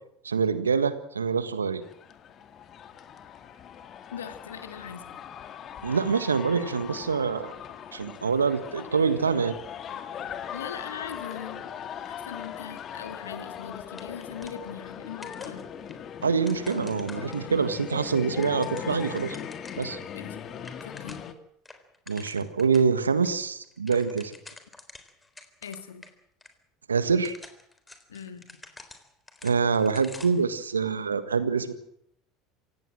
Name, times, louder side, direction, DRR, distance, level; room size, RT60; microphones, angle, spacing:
voice 1, 0.2-1.8 5.8-7.5 7.9-9.6 16.2-19.4 19.8-20.0 22.1-24.3 26.9-27.4 29.4-31.7, right 5 dB, 85° right, 13 dB, 1.6 m, -25 dB
sound 1, 1.8-21.3, left 8 dB, 40° left, 2.3 m, -39 dB
voice 2, 4.1-5.1 10.5-11.7 12.0-15.6 20.1-20.5 20.8-21.3 25.6-26.0 28.1-28.5, left 8 dB, 80° left, 8 dB, 2.4 m, -40 dB
sound 2, 13.9-15.0 15.2-17.7 18.2-20.0 20.3-20.4 20.6-21.4 21.7-22.9 23.2-23.3 23.6-26.1 26.4-26.5 27.1-30.5, left 3 dB, 15° left, 3.9 m, -48 dB
27.0 x 17.0 x 7.7 m, 0.73 s
figure-of-eight pair, 70°, 0 cm